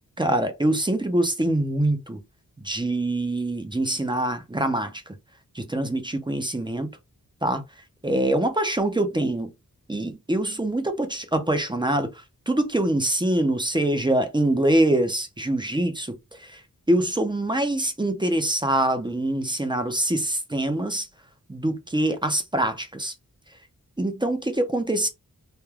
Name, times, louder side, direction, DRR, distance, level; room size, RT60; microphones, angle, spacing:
voice 1, 0.2-2.2 2.6-5.0 5.5-6.9 7.4-7.6 8.0-9.5 9.9-16.6 16.9-21.1 21.5-23.1 24.0-25.1, right 1 dB, 15° right, 0.5 m, -24 dB
2.2 x 2.2 x 3.1 m
wide cardioid pair, 70°, 34 cm